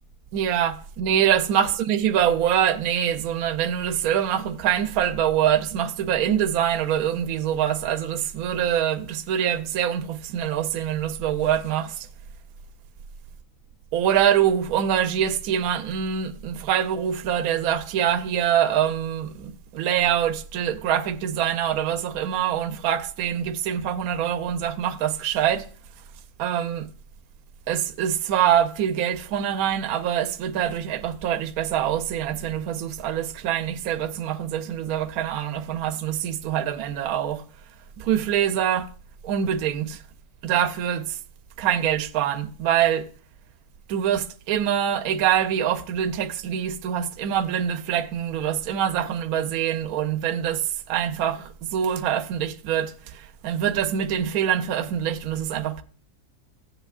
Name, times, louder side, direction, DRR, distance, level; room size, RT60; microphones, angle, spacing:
voice 1, 0.3-12.1 13.9-25.7 26.4-26.9 27.7-37.4 38.0-38.9 39.2-40.0 40.4-41.2 41.6-43.1 43.9-55.8, right 9 dB, 75° right, 1.0 m, -24 dB
15.5 x 7.9 x 2.4 m
omnidirectional pair, 1.6 m